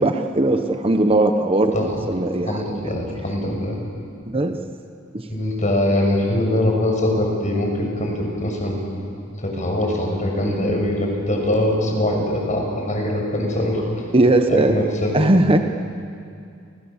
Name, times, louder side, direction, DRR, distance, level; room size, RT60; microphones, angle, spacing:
voice 1, 0.0-2.6 4.3-4.5 5.1-5.2 10.4-10.6 14.1-14.7 15.1-15.6, right 2 dB, 30° right, 5 dB, 1.1 m, -18 dB
voice 2, 2.5-3.8 5.3-8.8 9.4-13.9 14.5-15.3, left 1 dB, 35° left, 0 dB, 6.8 m, -22 dB
29.5 x 27.0 x 7.4 m, 2.5 s
head